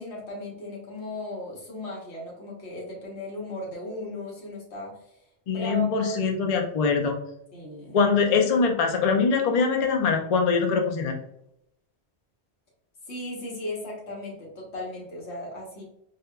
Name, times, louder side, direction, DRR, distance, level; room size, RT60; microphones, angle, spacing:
voice 1, 0.0-5.2 5.5-6.2 7.5-8.0 13.1-15.8, left 1 dB, 80° left, -3 dB, 1.4 m, -36 dB
voice 2, 5.5-7.2 7.9-11.2, left 5 dB, 50° left, 3 dB, 0.5 m, -23 dB
4.2 x 2.4 x 2.2 m, 0.77 s
omnidirectional pair, 1.1 m